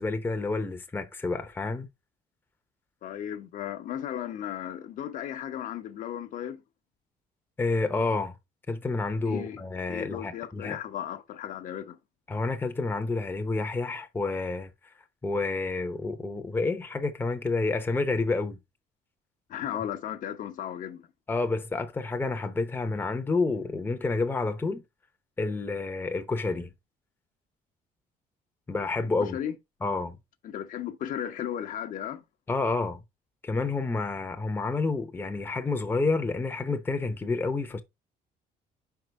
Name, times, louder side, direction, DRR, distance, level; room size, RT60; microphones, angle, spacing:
voice 1, 0.0-1.9 7.6-8.4 8.7-10.8 12.3-14.7 15.2-18.6 21.3-24.8 25.4-26.7 28.7-29.4 29.8-30.2 32.5-33.0 33.4-37.8, left 3 dB, 15° left, 0.7 m, -29 dB
voice 2, 3.0-6.6 9.2-9.6 9.9-12.0 19.5-21.1 29.3-29.5 30.4-32.2, left 10 dB, 60° left, 0.9 m, -35 dB
5.2 x 4.7 x 5.2 m
cardioid pair, 140°, 15 cm